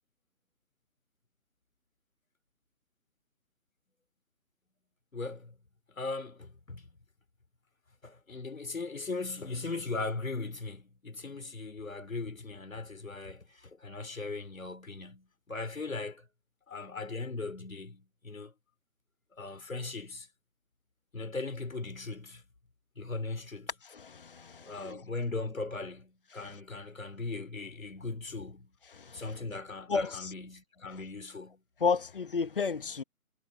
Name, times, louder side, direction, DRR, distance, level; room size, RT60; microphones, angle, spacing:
voice 1, 5.1-5.6 5.9-6.9 8.0-16.3 16.7-18.5 19.3-20.3 21.1-22.4 23.0-23.7 24.6-28.7 29.1-31.6, left 3 dB, 65° left, 4.0 m, -39 dB
voice 2, 23.8-25.0 28.9-29.2 29.9-30.3 31.8-33.0, left 5 dB, 35° left, 1.8 m, -32 dB
figure-of-eight pair, 150°, 44 cm